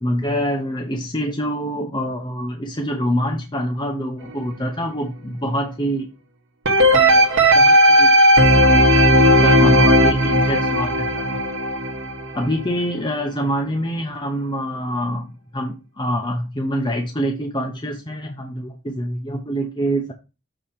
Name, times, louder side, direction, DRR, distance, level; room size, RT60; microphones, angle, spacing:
voice 1, 0.0-6.1 6.9-8.8 9.1-11.4 12.3-20.1, equal, 20° left, 2 dB, 0.7 m, -26 dB
sound 1, 6.7-12.7 13.2-13.3, equal, 60° right, 1.0 m, -15 dB
6.7 x 2.9 x 5.6 m, 0.29 s
head